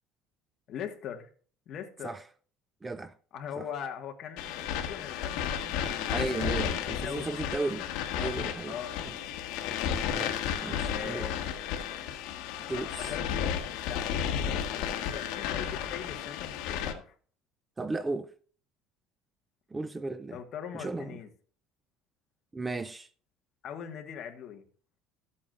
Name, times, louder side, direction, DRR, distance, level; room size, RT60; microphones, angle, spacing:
voice 1, 0.7-1.3 1.7-2.1 3.3-6.5 6.9-7.4 8.6-9.0 10.8-11.5 13.1-17.1 20.3-21.3 23.6-24.6, left 8 dB, 40° left, 1.5 m, -41 dB
voice 2, 2.8-3.1 3.6-3.7 6.1-7.9 8.2-8.8 9.0-9.2 9.8-11.3 12.7-13.1 17.8-18.3 19.7-20.4 20.7-21.2 22.5-23.1, right 3 dB, 10° right, 0.3 m, -35 dB
sound 1, 4.4-16.9, left 8 dB, 75° left, 1.3 m, -33 dB
13.5 x 8.4 x 2.5 m
cardioid pair, 170°, 0 cm